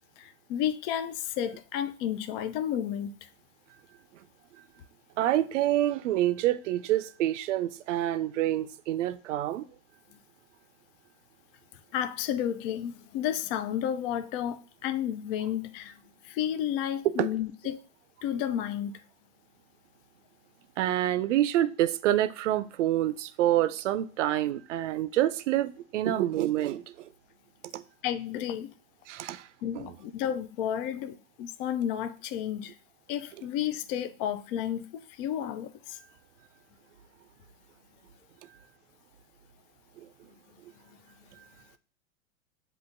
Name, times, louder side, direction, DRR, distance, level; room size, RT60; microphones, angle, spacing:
voice 1, 0.2-3.3 11.9-16.0 16.2-17.8 18.2-19.0 28.0-28.7 29.6-32.7 33.1-36.0, left 10 dB, 45° left, 0.5 m, -32 dB
voice 2, 5.2-9.7 17.1-17.3 20.8-27.1 27.7-27.8 29.1-29.5 29.7-29.9 40.0-40.1, right 13 dB, 70° right, 0.5 m, -27 dB
7.8 x 2.7 x 2.5 m
hypercardioid pair, 100°, 38 cm